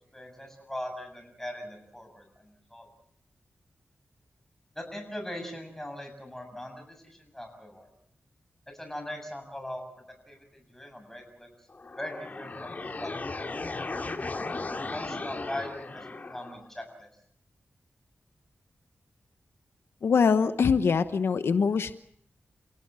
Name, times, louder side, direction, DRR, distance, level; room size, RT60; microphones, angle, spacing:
voice 1, 0.1-2.9 4.8-7.9 8.7-11.5 12.0-14.0 14.8-17.1, left 1 dB, 10° left, 5 dB, 7.2 m, -41 dB
sound 1, 11.7-16.7, left 3 dB, 45° left, 2.5 m, -36 dB
voice 2, 20.0-21.9, left 5 dB, 85° left, 11 dB, 1.0 m, -23 dB
28.5 x 17.5 x 7.5 m, 0.67 s
wide cardioid pair, 95°, 4 cm